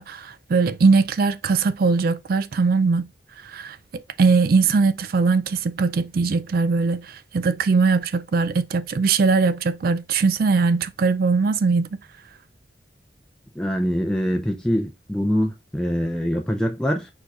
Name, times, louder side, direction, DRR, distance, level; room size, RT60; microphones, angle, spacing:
voice 1, 0.0-3.1 3.4-11.9, right 4 dB, 55° right, 0.4 m, -20 dB
voice 2, 13.6-17.1, equal, 5° left, 0.5 m, -24 dB
4.7 x 4.6 x 2.4 m
head